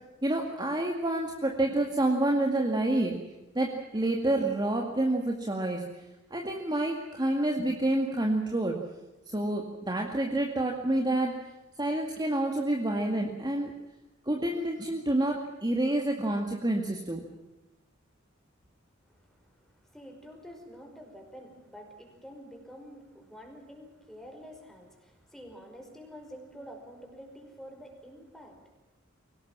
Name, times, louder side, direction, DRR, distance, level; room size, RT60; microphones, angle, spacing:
voice 1, 0.2-3.2 3.5-5.8 6.3-8.7 9.3-11.3 11.8-13.7 14.3-17.2, right 1 dB, 20° right, 1 dB, 2.1 m, -28 dB
voice 2, 19.1-28.7, equal, ahead, 2 dB, 5.3 m, -48 dB
23.0 x 18.5 x 7.5 m, 1.0 s
head